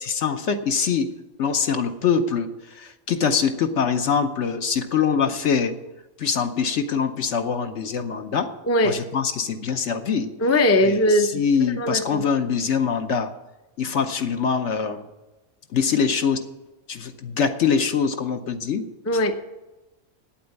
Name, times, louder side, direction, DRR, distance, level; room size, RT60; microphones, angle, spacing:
voice 1, 0.0-1.1 1.4-2.5 2.8-5.7 6.2-8.5 8.8-10.3 10.8-13.3 13.8-15.0 15.7-16.4 16.9-18.8, left 6 dB, 60° left, 7 dB, 1.1 m, -23 dB
voice 2, 8.7-9.0 10.4-11.3 11.8-12.2 19.1-19.3, left 1 dB, 15° left, 6 dB, 0.5 m, -19 dB
8.8 x 8.6 x 8.2 m, 1.0 s
omnidirectional pair, 1.5 m